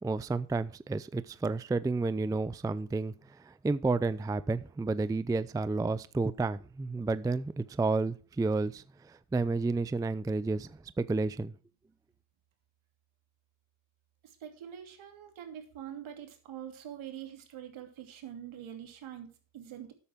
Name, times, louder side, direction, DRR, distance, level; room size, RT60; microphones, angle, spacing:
voice 1, 0.0-11.5, right 3 dB, 10° right, 0.4 m, -31 dB
voice 2, 14.2-19.9, right 10 dB, 70° right, 2.9 m, -45 dB
13.0 x 8.3 x 3.6 m
supercardioid pair, 75°, 49 cm